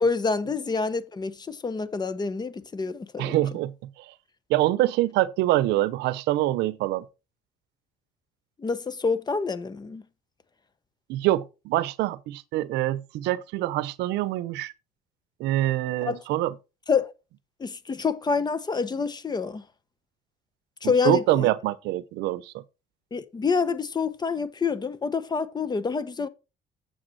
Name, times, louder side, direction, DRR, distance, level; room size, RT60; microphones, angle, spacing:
voice 1, 0.0-3.4 8.6-10.0 16.0-16.2 16.9-17.1 17.6-19.6 20.8-21.5 23.1-26.3, left 5 dB, 25° left, 1.0 m, -27 dB
voice 2, 3.2-3.7 4.1-4.2 4.5-7.0 11.1-14.7 15.4-16.5 20.8-22.6, right 15 dB, 85° right, 0.7 m, -25 dB
9.0 x 7.0 x 4.2 m
cardioid pair, 110°, 17 cm